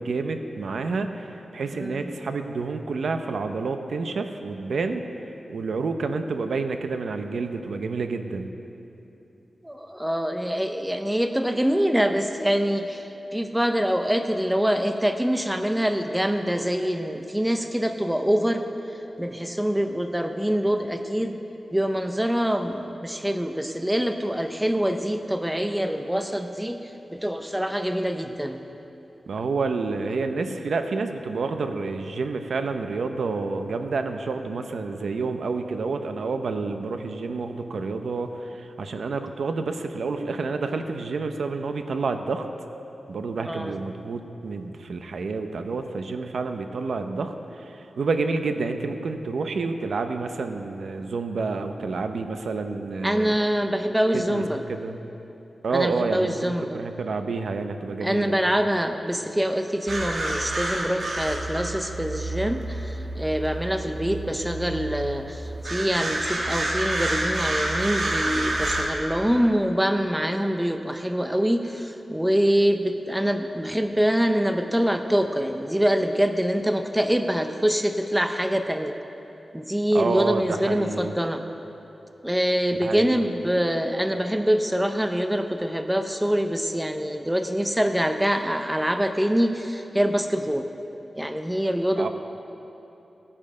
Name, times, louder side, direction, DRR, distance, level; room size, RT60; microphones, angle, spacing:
voice 1, 0.0-5.0 5.5-8.5 29.3-42.5 43.1-47.3 47.6-53.3 54.1-54.4 54.7-55.0 55.6-58.3 79.9-81.1 82.8-83.2 92.0-92.1, right 4 dB, 70° right, 7 dB, 0.8 m, -29 dB
voice 2, 1.7-2.1 9.6-18.6 18.9-21.4 21.7-28.6 43.4-43.8 53.0-54.6 55.7-56.8 58.0-79.0 79.5-81.4 82.2-90.7 91.2-92.1, equal, 5° right, 6 dB, 0.5 m, -25 dB
sound 1, 59.9-68.8, right 1 dB, 55° right, 2.1 m, -29 dB
17.0 x 8.8 x 5.4 m, 3.0 s
wide cardioid pair, 175°, 0 cm